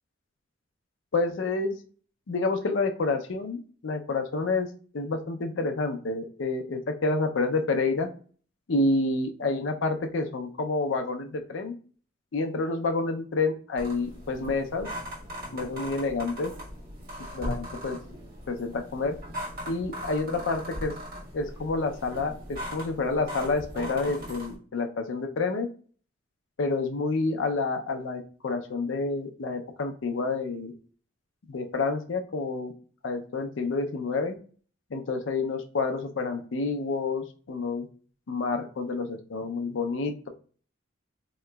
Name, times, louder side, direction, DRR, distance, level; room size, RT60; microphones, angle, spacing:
voice 1, 1.1-1.8 2.3-4.7 4.9-8.1 8.7-11.7 12.3-14.9 15.5-16.5 17.3-18.0 18.5-19.2 19.7-21.0 21.3-25.7 26.6-30.7 31.5-32.7 33.0-34.4 34.9-37.9 38.3-40.3, left 3 dB, 70° left, 5 dB, 0.5 m, -29 dB
sound 1, 13.8-24.6, equal, 45° right, 1.2 m, -39 dB
3.8 x 2.9 x 2.2 m, 0.41 s
head